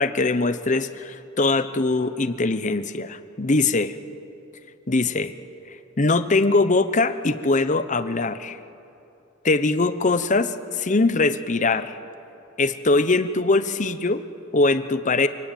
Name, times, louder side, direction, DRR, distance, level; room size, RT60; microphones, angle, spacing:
voice 1, 0.0-3.9 4.9-5.3 5.7-8.6 9.4-12.0 12.6-14.2 14.5-15.3, left 3 dB, 40° left, 12 dB, 0.9 m, -22 dB
28.5 x 18.0 x 9.2 m, 2.9 s
head